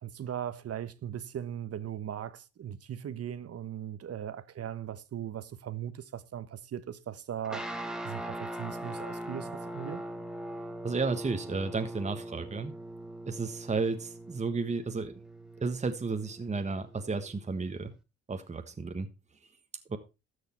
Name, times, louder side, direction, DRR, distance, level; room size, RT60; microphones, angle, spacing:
voice 1, 0.0-7.6 8.0-10.0, right 10 dB, 50° right, 1.1 m, -39 dB
sound 1, 7.4-18.0, right 1 dB, ahead, 1.5 m, -41 dB
voice 2, 10.8-12.7 13.3-15.1 15.6-17.9 18.3-19.1 19.9-20.0, right 4 dB, 25° right, 1.3 m, -32 dB
13.0 x 6.5 x 4.4 m
cardioid pair, 90°, 30 cm